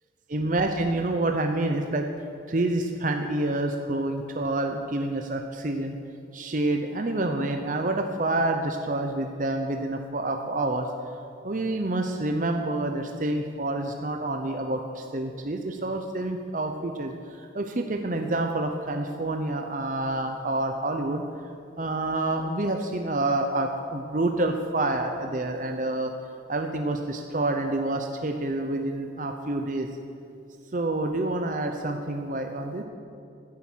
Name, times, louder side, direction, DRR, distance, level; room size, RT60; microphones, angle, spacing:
voice 1, 0.3-2.1 2.5-6.0 6.3-10.9 11.4-21.2 21.8-26.1 26.5-29.9 30.7-32.8, right 2 dB, 45° right, 4 dB, 0.7 m, -28 dB
15.0 x 9.6 x 6.3 m, 2.5 s
head